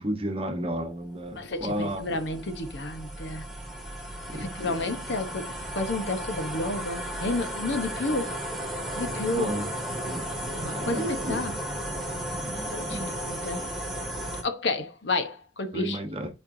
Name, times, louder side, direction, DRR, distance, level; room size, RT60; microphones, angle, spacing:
voice 1, 0.0-2.0 4.3-4.8 9.4-9.7 10.0-10.3 10.7-11.6 12.4-13.1 15.7-16.3, right 1 dB, 30° right, 1.0 m, -33 dB
sound 1, 0.9-14.4, right 1 dB, ahead, 2.0 m, -34 dB
voice 2, 1.3-3.4 4.3-8.3 8.9-9.5 10.6-11.5 12.7-13.7 14.4-16.0, left 2 dB, 70° left, 1.0 m, -31 dB
10.0 x 4.5 x 2.7 m
head